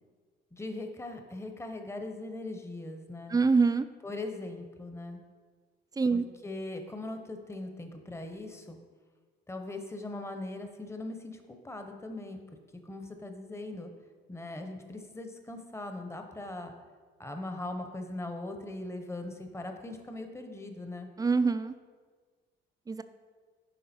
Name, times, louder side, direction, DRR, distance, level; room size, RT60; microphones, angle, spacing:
voice 1, 0.5-3.4 4.0-5.2 6.1-8.8 9.5-12.4 12.8-13.9 14.3-16.7 17.2-21.1, left 2 dB, 15° left, 5 dB, 0.8 m, -40 dB
voice 2, 3.3-3.9 6.0-6.2 21.2-21.7 22.9-23.0, right 4 dB, 20° right, 11 dB, 0.4 m, -25 dB
10.5 x 3.6 x 4.3 m, 1.5 s
cardioid pair, 90°, 20 cm